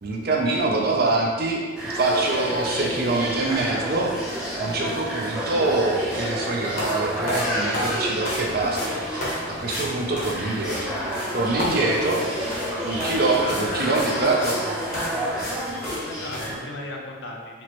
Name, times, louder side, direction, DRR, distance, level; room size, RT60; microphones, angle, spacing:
voice 1, 0.0-4.1 4.6-9.2 9.5-11.0 11.3-12.2 12.8-14.6, right 2 dB, 55° right, -1 dB, 0.5 m, -24 dB
sound 1, 1.7-16.6, equal, 5° right, 0.6 m, -30 dB
sound 2, 6.7-6.9 7.3-8.4 8.7-8.9 9.2-9.4 9.7-9.9 10.2-10.8 11.1-11.3 11.6-12.7 13.0-13.2 13.5-13.7 13.9-14.6 14.9-15.1 15.4-15.6 15.8-16.0 16.3-16.5, left 1 dB, 50° left, 0.9 m, -31 dB
voice 2, 13.4-14.4 16.1-17.6, left 2 dB, 65° left, 0 dB, 0.5 m, -35 dB
4.3 x 2.1 x 3.0 m, 1.5 s
head